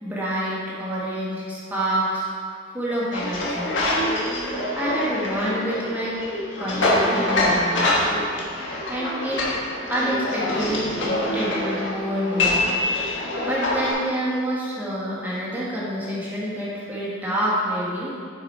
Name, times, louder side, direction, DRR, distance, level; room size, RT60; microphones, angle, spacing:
voice 1, 0.0-2.3 2.7-3.7 4.8-6.2 6.6-8.0 8.4-9.4 9.9-12.7 13.4-18.1, equal, 10° right, -7 dB, 1.4 m, -27 dB
sound 1, 3.1-13.9, left 1 dB, 80° left, 1.5 m, -25 dB
7.9 x 6.1 x 4.4 m, 2.2 s
head